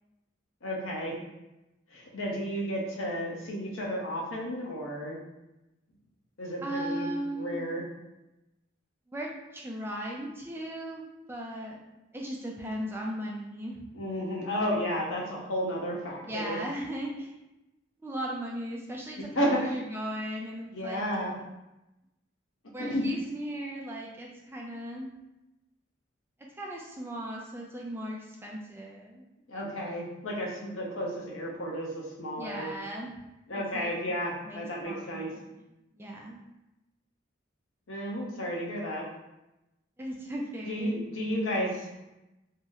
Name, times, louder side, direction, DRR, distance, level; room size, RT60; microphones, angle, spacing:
voice 1, 0.6-1.1 1.9-5.2 6.4-7.1 7.4-7.8 13.9-16.6 19.4-19.7 20.7-21.3 22.8-23.0 29.5-32.7 33.5-35.3 37.9-39.0 40.6-42.0, equal, 85° left, -2 dB, 0.7 m, -32 dB
voice 2, 6.6-7.6 9.1-11.0 11.3-11.8 12.1-13.8 16.3-17.4 18.0-21.0 22.7-25.1 26.6-29.3 32.4-33.2 33.7-34.2 34.5-36.4 40.0-41.0, right 1 dB, 10° right, -2 dB, 0.3 m, -37 dB
2.7 x 2.0 x 3.6 m, 0.96 s
head